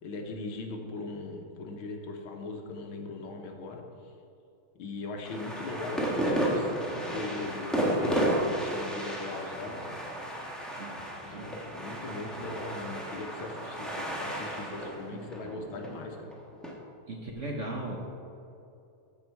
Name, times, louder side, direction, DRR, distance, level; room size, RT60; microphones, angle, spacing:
voice 1, 0.0-3.8 4.8-10.0 11.1-16.3, left 3 dB, 75° left, 3 dB, 1.8 m, -39 dB
sound 1, 5.2-16.7, right 1 dB, ahead, 0.9 m, -33 dB
voice 2, 10.8-11.6 15.1-15.2 17.1-18.1, right 1 dB, 55° right, 0 dB, 0.9 m, -38 dB
14.0 x 5.0 x 4.6 m, 2.7 s
omnidirectional pair, 2.3 m